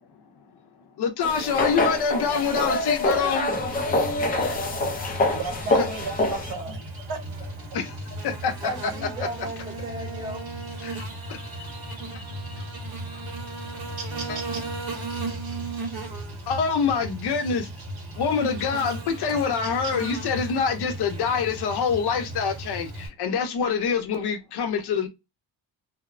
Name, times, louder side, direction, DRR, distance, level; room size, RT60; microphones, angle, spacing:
voice 1, 1.0-3.5 5.8-5.9 7.7-7.9 8.2-8.9 10.8-11.4 12.6-12.7 14.3-14.4 16.5-17.7 18.2-25.1, left 6 dB, 60° left, 0.6 m, -26 dB
sound 1, 1.2-6.5, left 2 dB, 25° left, 0.3 m, -25 dB
Buzz, 3.5-23.1, right 2 dB, 85° right, 1.3 m, -35 dB
voice 2, 5.1-7.2, right 4 dB, 60° right, 0.9 m, -35 dB
voice 3, 8.6-10.5, equal, 10° right, 0.6 m, -36 dB
2.8 x 2.0 x 2.4 m
cardioid pair, 170°, 45 cm